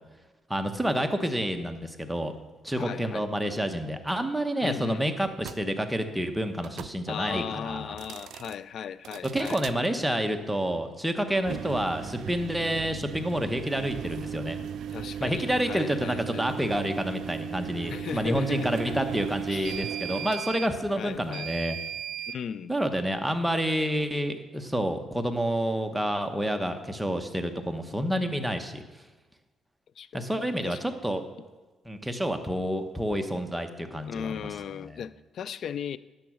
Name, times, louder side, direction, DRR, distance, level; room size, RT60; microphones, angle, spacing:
voice 1, 0.5-2.3 2.6-7.9 9.3-14.6 15.2-21.8 22.7-28.8 30.1-31.2 31.9-34.3 34.8-34.9, equal, 5° right, 6 dB, 1.1 m, -29 dB
voice 2, 2.8-3.2 4.6-5.0 7.1-9.6 14.9-16.5 17.9-19.0 19.5-19.9 21.0-21.5 22.3-22.7 30.0-30.2 30.6-30.8 34.1-36.0, left 8 dB, 65° left, 17 dB, 0.4 m, -36 dB
sound 1, 5.4-5.6 6.6-7.0 7.9-8.6 9.0-9.8 11.4-22.4, right 8 dB, 75° right, 0.3 m, -37 dB
10.5 x 6.9 x 6.3 m, 1.2 s
cardioid pair, 90°, 0 cm